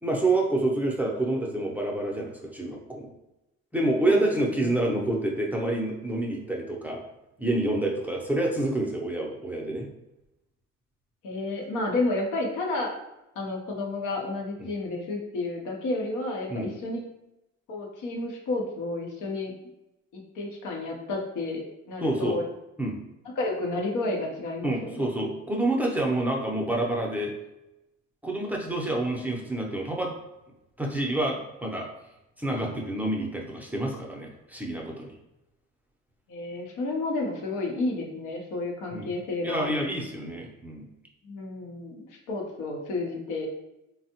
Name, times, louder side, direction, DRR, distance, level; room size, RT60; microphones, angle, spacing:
voice 1, 0.0-3.1 3.7-7.0 7.4-9.9 16.5-16.7 22.0-22.4 22.8-23.0 24.6-27.3 28.2-30.1 30.8-31.9 32.4-35.1 38.9-39.1 39.4-40.9, right 1 dB, 5° right, -2 dB, 0.5 m, -28 dB
voice 2, 4.1-4.7 11.2-12.9 13.4-17.0 17.7-19.5 20.1-22.4 23.4-25.1 36.3-39.7 41.2-43.5, left 2 dB, 85° left, 0 dB, 0.8 m, -31 dB
3.3 x 2.0 x 2.8 m, 0.94 s
cardioid pair, 90°, 30 cm